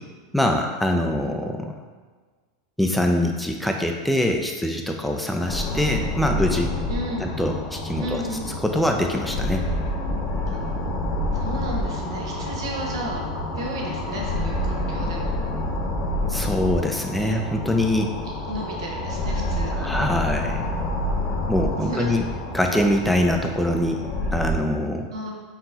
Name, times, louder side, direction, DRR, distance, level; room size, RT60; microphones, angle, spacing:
voice 1, 0.3-1.7 2.8-6.7 7.2-8.1 8.6-9.6 16.3-18.1 19.7-20.7 21.5-22.2 22.5-24.0 24.3-25.1, left 1 dB, ahead, 2 dB, 0.4 m, -23 dB
sound 1, 5.5-24.5, left 1 dB, 40° left, 0.8 m, -28 dB
voice 2, 6.9-7.2 8.0-8.5 10.5-10.6 11.3-13.3 13.5-15.3 17.2-17.3 18.5-19.9 21.5-22.1 25.1-25.3, right 1 dB, 80° right, -1 dB, 1.0 m, -33 dB
4.5 x 3.0 x 3.9 m, 1.4 s
hypercardioid pair, 110°, 3 cm